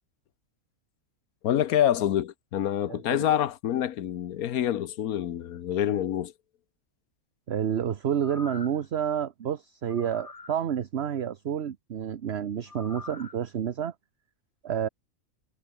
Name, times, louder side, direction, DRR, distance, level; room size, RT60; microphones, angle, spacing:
voice 1, 1.4-6.3, left 11 dB, 85° left, 1.3 m, -26 dB
voice 2, 7.5-13.9 14.6-14.9, right 9 dB, 50° right, 1.1 m, -29 dB
sound 1, 8.1-8.9 9.9-10.6 12.7-13.4 13.8-13.9, left 4 dB, 25° left, 1.3 m, -45 dB
omnidirectional pair, 1.5 m